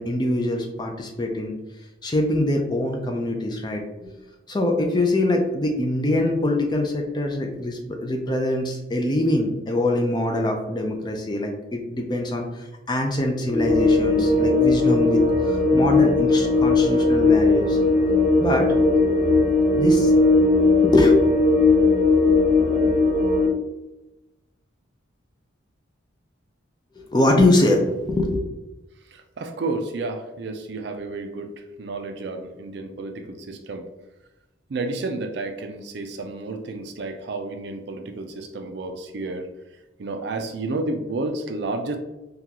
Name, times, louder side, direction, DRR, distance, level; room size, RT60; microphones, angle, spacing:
voice 1, 0.0-1.5 2.0-4.1 4.5-17.8 18.4-18.7 19.7-20.1 20.8-21.2 27.0-28.4, left 1 dB, 20° left, 2 dB, 0.4 m, -23 dB
sound 1, 13.5-23.5, left 3 dB, 45° left, 1.2 m, -18 dB
voice 2, 29.1-31.5 31.8-33.8 34.7-39.5 40.0-42.0, right 2 dB, 55° right, 5 dB, 0.4 m, -31 dB
3.7 x 2.3 x 2.8 m, 1.0 s
head